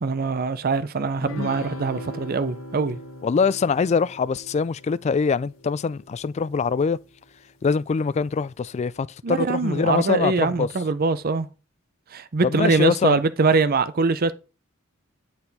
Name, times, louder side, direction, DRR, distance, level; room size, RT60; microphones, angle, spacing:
voice 1, 0.0-3.0 9.2-11.5 12.1-14.3, right 4 dB, 45° right, 0.6 m, -23 dB
sound 1, 1.2-6.9, left 1 dB, 70° left, 1.5 m, -39 dB
voice 2, 3.2-7.0 7.6-10.7 12.4-13.2, left 5 dB, 35° left, 0.3 m, -23 dB
9.7 x 4.3 x 4.1 m
head